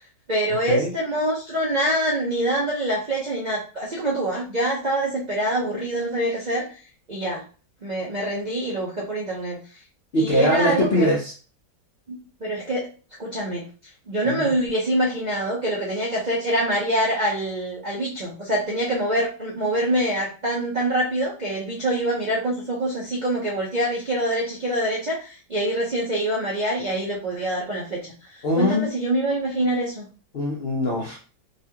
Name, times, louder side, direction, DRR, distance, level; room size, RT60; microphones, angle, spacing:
voice 1, 0.3-6.7 7.1-7.4 7.8-9.6 10.2-11.1 12.1-12.9 13.2-13.6 14.1-28.1 28.6-30.1, right 1 dB, 80° right, -4 dB, 0.4 m, -25 dB
voice 2, 10.1-11.3 14.2-14.5 28.4-28.9 30.3-31.2, equal, 70° left, -2 dB, 0.5 m, -22 dB
4.1 x 2.4 x 2.8 m, 0.37 s
omnidirectional pair, 2.0 m